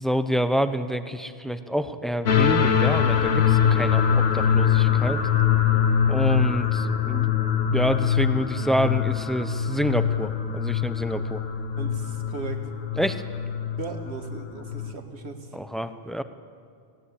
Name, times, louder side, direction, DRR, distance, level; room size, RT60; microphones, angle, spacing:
voice 1, 0.0-5.2 6.1-7.3 7.7-11.4 13.0-13.2 15.5-16.2, equal, ahead, 10 dB, 0.5 m, -27 dB
sound 1, 2.3-14.9, left 8 dB, 65° left, 1.3 m, -23 dB
voice 2, 11.8-12.7 13.8-15.5, right 3 dB, 70° right, 6 dB, 1.9 m, -37 dB
19.0 x 17.5 x 8.4 m, 2.3 s
omnidirectional pair, 1.1 m